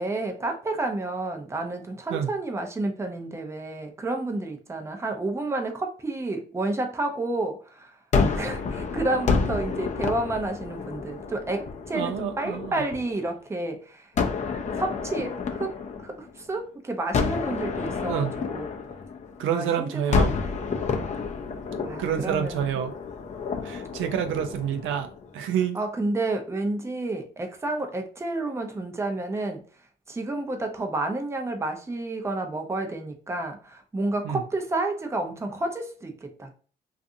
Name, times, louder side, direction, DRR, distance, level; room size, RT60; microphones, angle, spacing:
voice 1, 0.0-7.9 8.3-14.1 14.7-18.6 19.5-20.5 21.8-22.6 25.7-29.6 30.1-36.5, right 2 dB, 15° right, 0.5 m, -30 dB
Gunshot gunfire, 8.1-13.2 14.2-16.6 17.1-19.6 20.1-25.3, left 5 dB, 35° left, 0.5 m, -29 dB
voice 2, 11.9-12.8 18.1-18.3 19.4-20.3 22.0-22.9 23.6-25.8 34.2-34.4, right 8 dB, 80° right, 0.4 m, -28 dB
2.5 x 2.4 x 2.6 m
cardioid pair, 90°, 20 cm